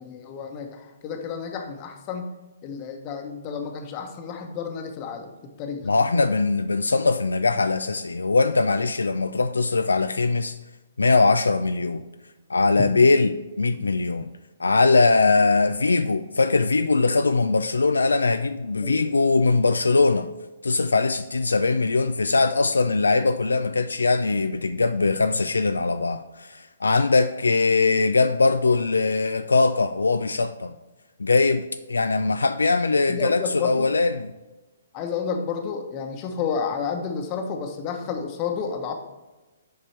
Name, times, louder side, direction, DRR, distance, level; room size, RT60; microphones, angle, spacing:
voice 1, 0.0-2.3 2.6-5.3 5.6-5.9 12.8-12.9 18.8-19.0 33.1-33.9 34.9-38.9, left 6 dB, 30° left, 1.0 m, -30 dB
voice 2, 5.9-10.6 11.0-12.0 12.5-14.3 14.6-20.3 20.6-30.7 31.2-34.3, left 3 dB, 80° left, 0.3 m, -21 dB
7.7 x 5.2 x 3.3 m
figure-of-eight pair, 130°, 0 cm